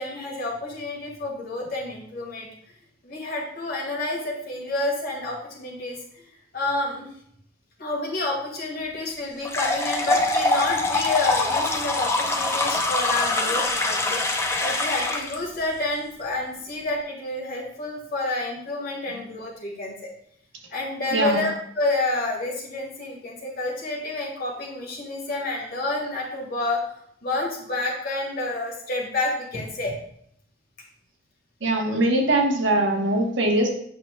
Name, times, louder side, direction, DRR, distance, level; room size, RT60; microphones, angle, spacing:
voice 1, 0.0-2.5 3.0-7.1 7.8-20.1 20.7-26.8 27.2-29.9, left 2 dB, 50° left, -2 dB, 1.9 m, -29 dB
sound 1, 9.4-15.4, left 2 dB, 15° left, 0.5 m, -24 dB
voice 2, 21.1-21.5 31.6-33.7, right 1 dB, 75° right, 2 dB, 1.1 m, -22 dB
7.8 x 5.9 x 2.3 m, 0.69 s
head